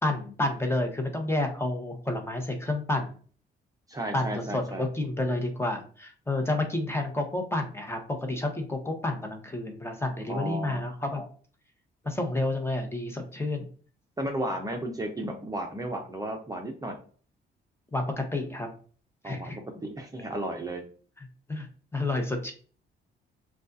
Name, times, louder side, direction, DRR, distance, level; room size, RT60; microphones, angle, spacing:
voice 1, 0.0-3.1 4.1-11.3 12.0-13.7 17.9-18.7 19.2-19.6 21.2-21.7 21.9-22.5, left 2 dB, 10° left, 4 dB, 1.0 m, -30 dB
voice 2, 3.9-4.8 10.3-10.8 14.2-17.0 19.2-20.8, right 1 dB, 20° right, 2 dB, 0.7 m, -34 dB
6.4 x 2.4 x 2.6 m, 0.42 s
cardioid pair, 90°, 20 cm